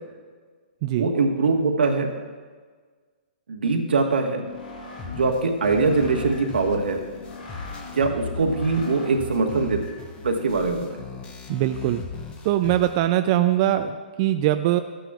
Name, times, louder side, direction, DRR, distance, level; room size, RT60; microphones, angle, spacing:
voice 1, 0.9-2.1 3.5-4.4 5.2-7.0 7.9-9.8 10.2-11.0, right 4 dB, 85° right, 2 dB, 1.4 m, -22 dB
sound 1, 4.2-9.5, left 4 dB, 75° left, 2.7 m, -40 dB
sound 2, 5.0-13.0, left 5 dB, 20° left, 0.8 m, -37 dB
voice 2, 11.5-12.0 12.4-14.8, right 13 dB, 35° right, 8 dB, 0.3 m, -22 dB
13.5 x 9.0 x 2.4 m, 1.5 s
hypercardioid pair, 140°, 5 cm